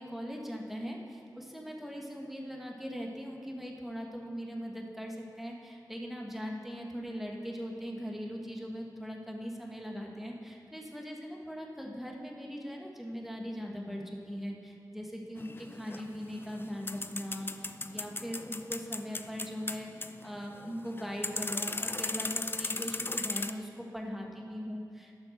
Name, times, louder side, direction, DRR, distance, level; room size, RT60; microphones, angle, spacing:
voice 1, 0.0-25.1, equal, 5° right, 0 dB, 1.7 m, -40 dB
sound 1, 15.4-23.5, left 2 dB, 30° left, 0.5 m, -37 dB
12.5 x 6.1 x 6.6 m, 2.4 s
wide cardioid pair, 60°, 7 cm